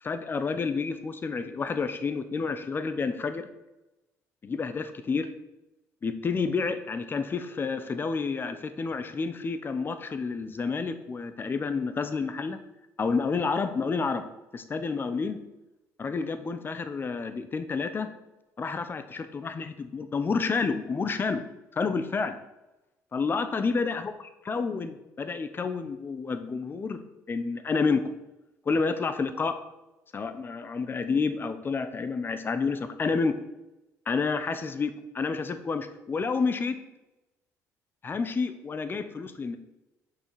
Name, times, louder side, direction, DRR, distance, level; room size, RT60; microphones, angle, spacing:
voice 1, 0.0-3.5 4.4-5.3 6.0-12.6 13.0-14.2 14.5-15.4 16.0-18.1 18.6-21.4 21.7-22.4 23.1-24.1 24.5-27.0 27.3-28.0 28.7-29.6 30.1-33.4 34.1-36.8 38.0-39.6, left 4 dB, 35° left, 10 dB, 1.0 m, -29 dB
7.1 x 5.7 x 5.8 m, 0.98 s
cardioid pair, 95°, 7 cm